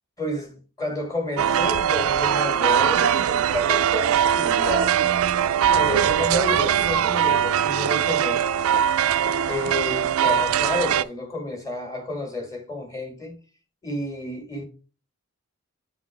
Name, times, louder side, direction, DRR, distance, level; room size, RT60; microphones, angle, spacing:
voice 1, 0.2-5.0 5.7-8.6 9.5-13.4 13.8-14.6, left 2 dB, 15° left, 1.4 m, -30 dB
sound 1, 1.4-11.0, right 9 dB, 70° right, 0.3 m, -21 dB
8.3 x 3.8 x 3.3 m
head